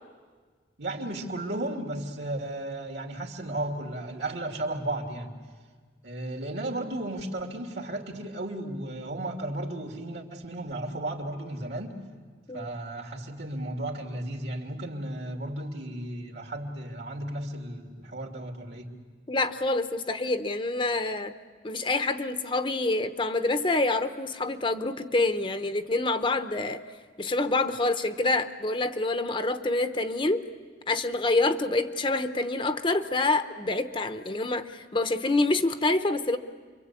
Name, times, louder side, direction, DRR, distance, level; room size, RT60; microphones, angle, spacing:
voice 1, 0.8-5.3 6.0-11.9 12.5-18.9, right 1 dB, 70° right, 3 dB, 2.9 m, -34 dB
voice 2, 19.3-21.3 21.6-26.8 27.2-30.4 30.9-36.4, left 2 dB, 30° left, 9 dB, 0.9 m, -27 dB
29.0 x 24.0 x 8.4 m, 1.5 s
head